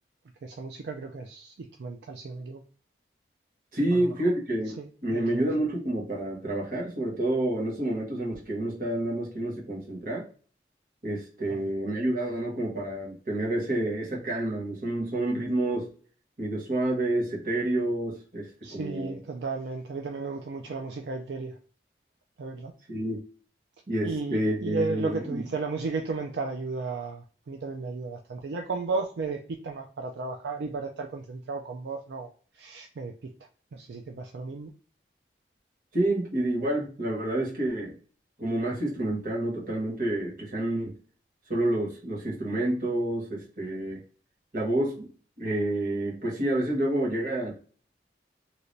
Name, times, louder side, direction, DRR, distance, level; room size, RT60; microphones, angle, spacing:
voice 1, 0.4-2.6 3.9-4.1 4.8-5.5 11.5-11.6 18.6-21.5 22.4-22.7 24.0-32.3 32.5-33.3 33.7-34.7, right 3 dB, 75° right, 3 dB, 0.4 m, -34 dB
voice 2, 3.7-4.8 5.0-10.3 11.0-15.9 16.4-19.2 22.9-23.2 23.9-25.4 35.9-37.9 38.4-40.9 41.5-44.0 44.5-45.1 45.4-47.7, right 1 dB, 50° right, -3 dB, 1.3 m, -29 dB
3.2 x 2.8 x 2.6 m, 0.41 s
head